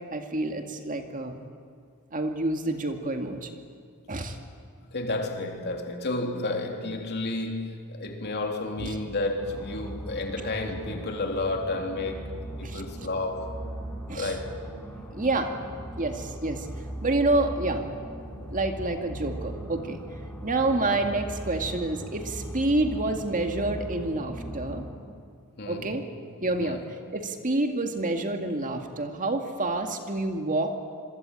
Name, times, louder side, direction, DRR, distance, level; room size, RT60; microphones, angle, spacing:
voice 1, 0.1-1.4 2.1-3.5 4.1-4.4 8.8-8.9 12.6-12.8 14.1-14.4 15.1-15.5 16.0-17.8 18.5-20.0 20.4-24.8 25.7-26.0 26.4-26.8 27.1-30.7, right 2 dB, 35° right, 5 dB, 2.1 m, -28 dB
voice 2, 4.9-12.3 12.6-13.6 14.1-14.6 20.7-20.9 25.6-25.9 26.6-26.8, left 2 dB, 50° left, 3 dB, 3.4 m, -31 dB
sound 1, 9.4-25.0, right 1 dB, 5° left, 3.7 m, -39 dB
27.0 x 23.0 x 9.0 m, 2.2 s
head